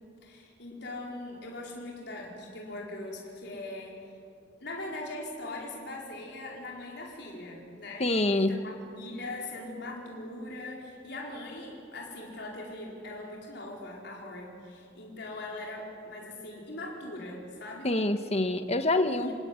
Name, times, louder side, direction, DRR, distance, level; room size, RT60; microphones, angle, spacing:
voice 1, 0.2-4.1 4.6-8.0 8.4-17.9 19.1-19.3, left 2 dB, 65° left, -2 dB, 4.8 m, -41 dB
voice 2, 8.0-8.6 17.8-19.3, left 2 dB, 35° left, 8 dB, 1.4 m, -26 dB
28.5 x 18.0 x 9.8 m, 2.6 s
head